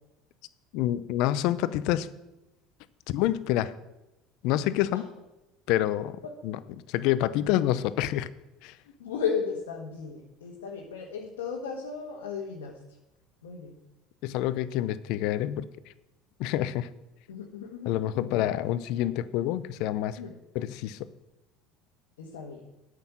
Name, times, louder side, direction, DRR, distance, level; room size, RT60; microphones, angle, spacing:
voice 1, 0.7-2.1 3.1-3.7 4.4-5.0 5.7-6.6 6.9-8.3 8.6-8.8 14.2-15.7 16.4-16.9 17.9-20.2 20.5-21.0, left 13 dB, 70° left, 16 dB, 0.6 m, -27 dB
voice 2, 9.0-12.8 13.4-13.8 17.3-18.5 20.2-20.3 22.2-22.6, left 6 dB, 90° left, -2 dB, 1.5 m, -35 dB
8.8 x 6.5 x 7.3 m, 0.97 s
hypercardioid pair, 80°, 0 cm